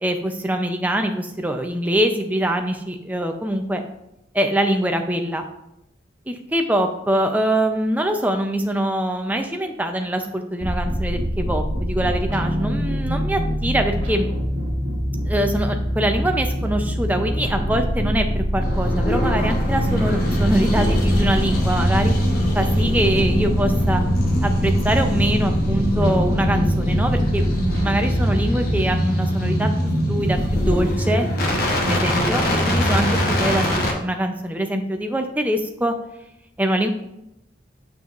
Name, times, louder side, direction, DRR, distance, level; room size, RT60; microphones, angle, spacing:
voice 1, 0.0-3.8 4.3-5.4 6.3-14.3 15.3-22.1 22.5-24.0 24.4-29.7 30.1-31.3 31.8-33.6 33.9-35.9 36.6-36.9, right 1 dB, 10° right, 5 dB, 0.5 m, -23 dB
sound 1, 10.6-28.9, equal, 70° right, 1.5 m, -25 dB
sound 2, 18.6-33.9, equal, 45° left, 1.1 m, -22 dB
7.0 x 6.1 x 2.5 m, 0.85 s
head